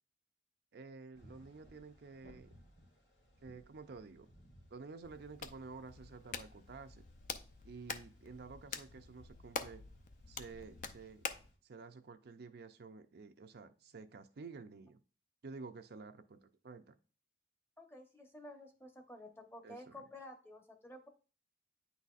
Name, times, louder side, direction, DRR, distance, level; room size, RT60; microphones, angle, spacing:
voice 1, 0.7-2.5 3.4-4.3 4.7-7.0 7.6-9.8 10.3-11.2 11.6-15.0 15.4-17.0 19.6-20.0, right 4 dB, 60° right, 8 dB, 0.5 m, -51 dB
sound 1, 1.1-11.6, equal, 90° left, 2.5 m, -65 dB
Hands, 5.0-11.5, left 5 dB, 45° left, 0.5 m, -46 dB
voice 2, 17.8-21.1, left 1 dB, 15° left, 5 dB, 0.9 m, -52 dB
9.7 x 4.0 x 2.4 m, 0.37 s
head